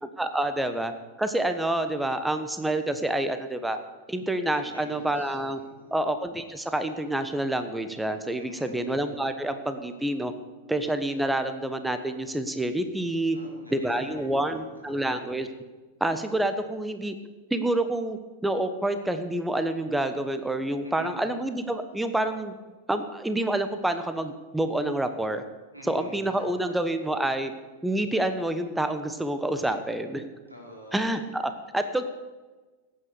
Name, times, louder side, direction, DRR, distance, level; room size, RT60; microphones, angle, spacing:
voice 1, 0.2-0.9 1.2-3.8 4.1-5.6 5.9-10.3 10.7-13.4 13.7-15.5 16.0-17.1 17.5-22.5 22.9-25.4 25.9-27.5 27.8-30.3 30.9-32.0, right 1 dB, 5° right, 9 dB, 1.2 m, -28 dB
voice 2, 4.5-5.9 8.4-8.9 13.3-15.2 20.8-21.2 25.7-26.7 30.5-31.2, equal, 85° right, -2 dB, 4.6 m, -47 dB
17.0 x 9.2 x 6.7 m, 1.3 s
figure-of-eight pair, 90°, 0 cm